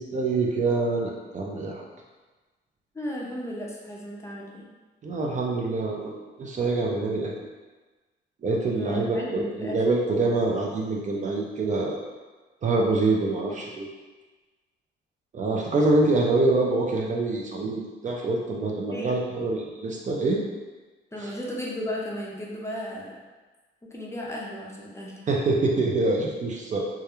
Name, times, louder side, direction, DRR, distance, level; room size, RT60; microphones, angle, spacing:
voice 1, 0.0-1.8 5.0-6.1 6.4-7.3 8.4-12.0 12.6-13.9 15.3-20.4 21.2-21.3 25.3-26.8, right 2 dB, 40° right, -1 dB, 0.4 m, -25 dB
voice 2, 2.9-4.6 8.7-9.8 18.9-19.1 21.1-23.2 23.8-25.1, equal, 15° left, -4 dB, 0.5 m, -34 dB
2.3 x 2.2 x 2.9 m, 1.3 s
cardioid pair, 90°, 20 cm